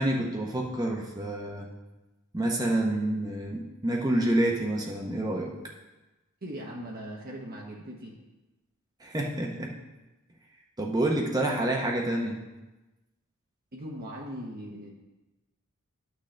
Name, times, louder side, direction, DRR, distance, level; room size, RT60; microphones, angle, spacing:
voice 1, 0.0-1.7 2.3-5.5 9.0-9.7 10.8-12.4, right 1 dB, 20° right, -1 dB, 0.8 m, -28 dB
voice 2, 6.4-8.2 13.7-14.9, equal, 45° right, -2 dB, 1.0 m, -39 dB
11.0 x 6.3 x 3.3 m, 1.1 s
head